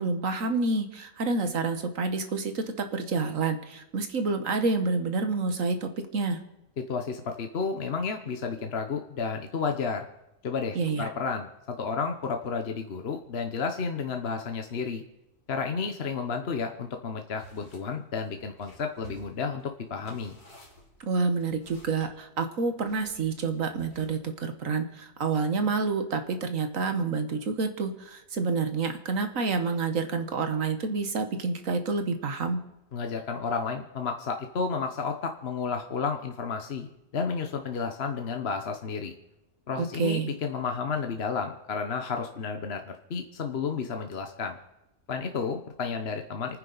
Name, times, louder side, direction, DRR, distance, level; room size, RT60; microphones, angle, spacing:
voice 1, 0.0-6.4 10.7-11.1 21.0-32.6 39.8-40.3, right 4 dB, 60° right, 8 dB, 1.6 m, -28 dB
voice 2, 6.8-10.1 10.4-15.0 15.5-20.4 32.9-39.1 39.7-44.6 45.1-46.6, left 5 dB, 45° left, 5 dB, 1.1 m, -32 dB
sound 1, 17.4-17.8 18.2-22.1 22.8-24.3, equal, 90° left, 4.4 m, -53 dB
28.5 x 9.7 x 4.0 m, 0.94 s
omnidirectional pair, 1.6 m